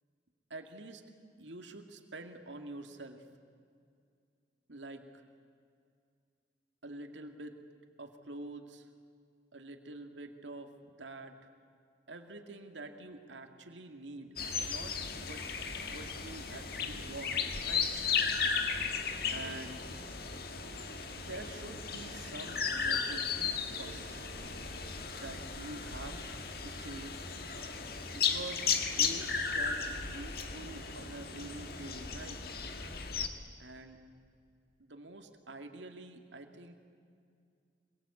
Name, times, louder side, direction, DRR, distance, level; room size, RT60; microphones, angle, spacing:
voice 1, 0.5-1.0 1.4-3.3 4.7-5.2 6.8-7.6 8.0-8.9 9.5-11.5 12.1-14.4 14.6-15.5 15.9-17.9 19.3-19.9 21.1-24.3 25.1-26.2 26.6-27.2 28.1-32.6 33.6-34.0 34.8-36.7, right 2 dB, 80° right, 6 dB, 2.3 m, -47 dB
sound 1, 14.4-33.3, left 5 dB, 55° left, 1.8 m, -35 dB
25.0 x 23.0 x 8.6 m, 2.3 s
head